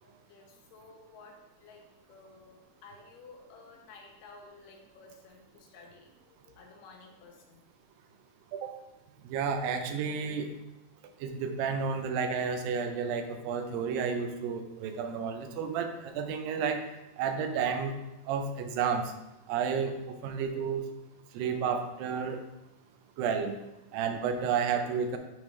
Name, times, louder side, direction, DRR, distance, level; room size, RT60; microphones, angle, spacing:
voice 1, 0.0-7.6 8.6-8.8 23.9-24.0, left 3 dB, 70° left, 1 dB, 1.8 m, -54 dB
voice 2, 9.3-10.5 11.2-16.8 17.2-17.9 18.3-19.1 19.5-20.8 21.3-22.4 23.2-23.6 23.9-25.2, right 6 dB, 80° right, 7 dB, 2.2 m, -31 dB
10.0 x 3.5 x 3.2 m, 0.94 s
omnidirectional pair, 4.4 m